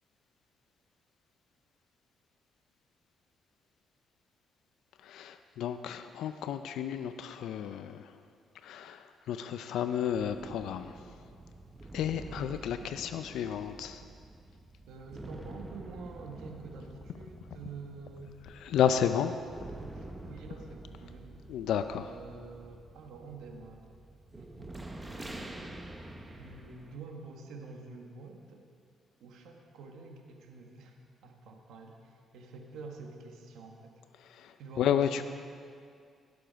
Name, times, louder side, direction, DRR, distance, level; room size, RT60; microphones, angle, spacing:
voice 1, 5.0-8.1 8.6-10.9 11.9-14.0 18.6-19.4 21.5-22.1 34.2-35.3, left 9 dB, 80° left, 10 dB, 0.4 m, -32 dB
sound 1, 10.1-27.0, right 2 dB, 15° right, 1.0 m, -47 dB
voice 2, 14.9-18.4 19.8-21.3 22.0-23.9 24.3-25.6 26.3-28.6 29.2-33.9 34.6-35.3, right 4 dB, 80° right, 2 dB, 1.4 m, -48 dB
17.0 x 6.9 x 5.2 m, 2.3 s
cardioid pair, 90°, 0 cm